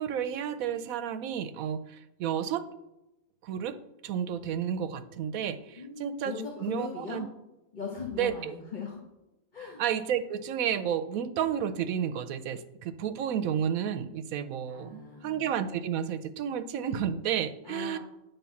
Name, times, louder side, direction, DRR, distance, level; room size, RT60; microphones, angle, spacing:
voice 1, 0.0-2.7 3.4-3.7 4.0-7.3 8.2-8.6 9.8-18.0, right 9 dB, 75° right, 10 dB, 1.1 m, -31 dB
voice 2, 5.8-7.2 7.7-9.0 9.5-9.8 14.7-15.5 17.6-18.0, left 5 dB, 35° left, -3 dB, 1.3 m, -39 dB
9.7 x 3.7 x 7.0 m, 0.93 s
omnidirectional pair, 1.5 m